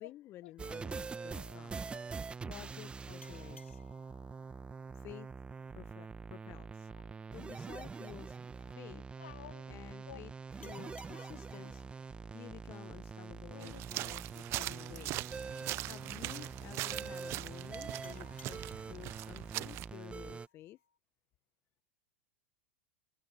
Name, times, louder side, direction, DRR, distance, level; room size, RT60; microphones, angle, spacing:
voice 1, 0.0-1.7 2.4-3.8 4.9-5.3 5.7-6.9 7.3-8.4 8.8-9.0 9.7-10.3 10.6-11.8 12.2-15.2 15.8-20.8, left 14 dB, 35° left, 1.4 m, -52 dB
sound 1, 0.6-20.5, right 5 dB, 15° right, 1.7 m, -45 dB
voice 2, 1.3-1.6 1.9-2.0 6.9-7.2 8.6-8.8 9.2-10.2 11.1-11.3 13.5-13.8 15.5-15.8, left 12 dB, 70° left, 3.2 m, -54 dB
sound 2, 3.2-6.4 10.6-13.8 18.0-21.0, left 5 dB, 85° left, 5.8 m, -63 dB
sound 3, 13.6-19.9, right 19 dB, 40° right, 1.1 m, -41 dB
figure-of-eight pair, 90°, 7 cm